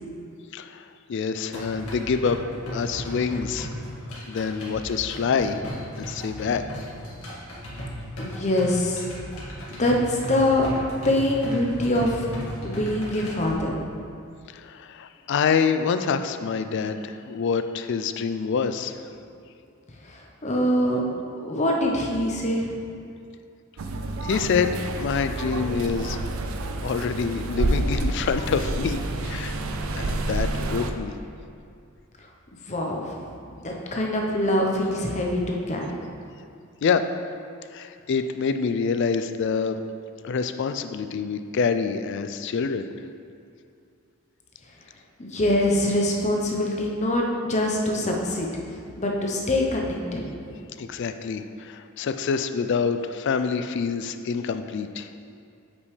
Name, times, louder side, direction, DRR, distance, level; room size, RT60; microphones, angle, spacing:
voice 1, 0.5-0.8 1.1-3.7 4.1-5.6 6.0-6.6 14.5-18.9 24.2-24.7 25.0-26.2 26.8-29.6 30.0-31.1 36.8-37.1 37.7-39.8 40.2-42.9 50.8-55.1, left 5 dB, 55° left, 9 dB, 0.3 m, -26 dB
sound 1, 1.5-13.5, equal, 80° left, 1.7 m, -36 dB
voice 2, 8.2-9.1 9.8-10.7 11.0-12.3 12.6-13.7 20.0-21.0 21.4-22.7 32.6-33.2 33.5-35.9 45.2-48.5 49.0-50.2, left 1 dB, 30° left, 0 dB, 0.8 m, -24 dB
sound 2, 23.8-30.9, right 2 dB, 70° right, 0.5 m, -29 dB
8.3 x 5.2 x 3.3 m, 2.4 s
head